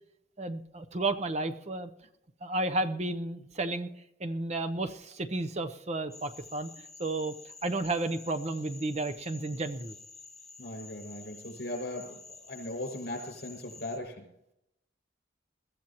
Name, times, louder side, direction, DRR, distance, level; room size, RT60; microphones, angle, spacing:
voice 1, 0.4-1.9 2.4-3.9 4.2-6.7 7.0-7.3 7.6-9.9, right 2 dB, 35° right, 9 dB, 0.7 m, -32 dB
sound 1, 6.1-14.0, left 4 dB, ahead, 1.7 m, -50 dB
voice 2, 10.6-14.3, left 1 dB, 60° left, 3 dB, 5.8 m, -38 dB
21.5 x 14.5 x 3.0 m, 0.79 s
head